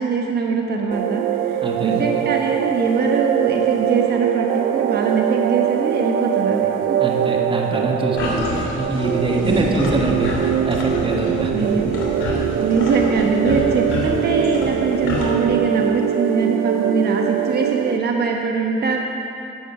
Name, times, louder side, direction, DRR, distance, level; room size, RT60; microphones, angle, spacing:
voice 1, 0.0-7.0 9.4-9.8 11.5-11.9 12.5-19.0, right 4 dB, 55° right, 1 dB, 1.2 m, -22 dB
sound 1, 0.9-18.0, right 10 dB, 80° right, 0.4 m, -22 dB
voice 2, 1.6-2.0 7.0-10.3 10.6-11.7, right 2 dB, 25° right, 0 dB, 1.5 m, -24 dB
sound 2, 8.2-15.2, left 2 dB, 75° left, 2.7 m, -28 dB
10.5 x 8.1 x 5.7 m, 2.8 s
cardioid pair, 90°, 20 cm